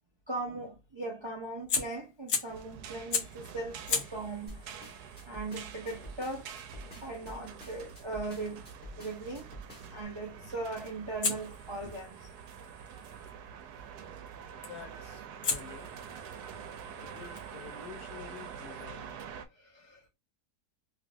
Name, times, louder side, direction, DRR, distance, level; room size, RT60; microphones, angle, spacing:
voice 1, 0.3-4.7 5.3-6.5 7.0-8.7 8.9-9.5 9.9-12.3 13.1-13.3 14.0-14.1 16.6-16.8 19.5-20.0, right 2 dB, 40° right, 0.4 m, -39 dB
Fire, 1.7-2.7 3.1-3.5 3.9-8.8 11.2-13.3 14.6-14.9 15.4-18.9, left 5 dB, 60° left, 1.3 m, -39 dB
sound 1, 2.5-19.5, right 7 dB, 80° right, 1.1 m, -46 dB
sound 2, 4.5-10.0, equal, 5° left, 1.5 m, -48 dB
voice 2, 14.6-16.1 17.0-19.1, left 7 dB, 85° left, 1.5 m, -49 dB
3.2 x 3.1 x 2.5 m
omnidirectional pair, 1.7 m